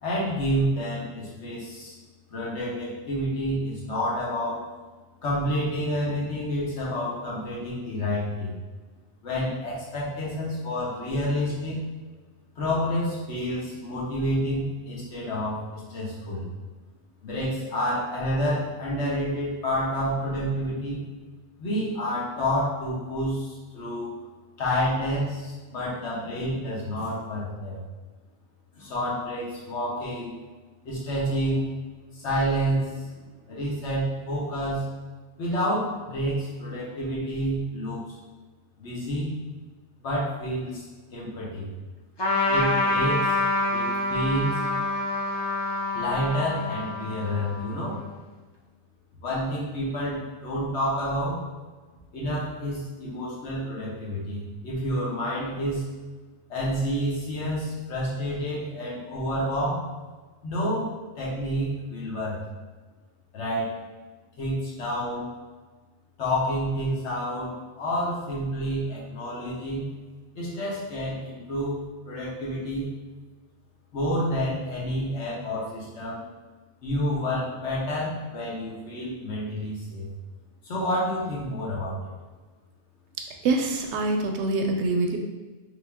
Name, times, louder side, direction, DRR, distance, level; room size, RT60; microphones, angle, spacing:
voice 1, 0.0-1.9 2.3-4.6 5.2-8.5 9.2-11.8 12.6-16.5 17.2-21.0 21.6-24.1 24.6-27.8 28.7-30.3 30.8-31.7 32.1-34.8 35.4-38.0 38.8-39.3 40.0-40.8 41.1-41.7 42.5-43.3 43.7-44.6 45.9-48.0 49.2-51.4 52.1-55.8 56.5-59.8 60.4-60.9 61.2-62.4 63.3-63.7 64.4-65.3 66.2-69.8 70.3-72.9 73.9-76.2 76.8-80.1 80.6-82.1, equal, 80° left, -5 dB, 1.4 m, -29 dB
Trumpet, 42.2-48.1, left 2 dB, 30° left, 0.5 m, -27 dB
voice 2, 83.4-85.2, right 3 dB, 80° right, 3 dB, 0.8 m, -25 dB
3.4 x 2.9 x 3.4 m, 1.3 s
omnidirectional pair, 1.2 m